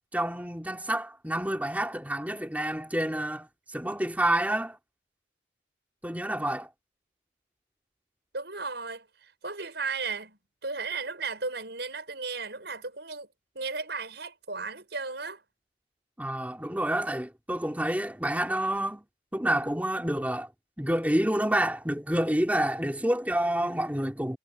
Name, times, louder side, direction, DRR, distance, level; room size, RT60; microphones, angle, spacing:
voice 1, 0.1-4.8 6.0-6.7 16.2-19.0 19.3-20.5 20.8-24.4, right 1 dB, 10° right, 3.5 m, -28 dB
voice 2, 8.3-13.3 13.5-15.4, right 4 dB, 65° right, 6.0 m, -35 dB
head